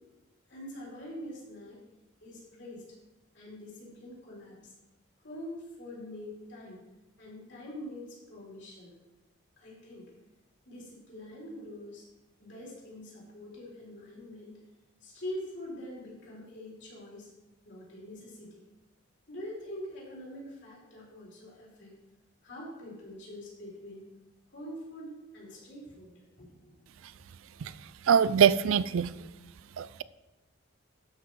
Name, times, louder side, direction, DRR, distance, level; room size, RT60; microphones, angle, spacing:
voice 1, 0.5-1.8 2.2-2.9 3.3-4.7 5.2-6.8 7.2-9.0 9.6-10.1 10.7-12.1 12.4-14.6 15.0-17.3 17.6-18.6 19.3-22.0 22.4-24.1 24.5-26.1 26.4-26.9, left 1 dB, 55° left, -5 dB, 4.0 m, -44 dB
voice 2, 28.1-29.1 29.8-30.0, right 7 dB, 70° right, 16 dB, 0.4 m, -23 dB
12.0 x 5.7 x 4.8 m, 1.0 s
head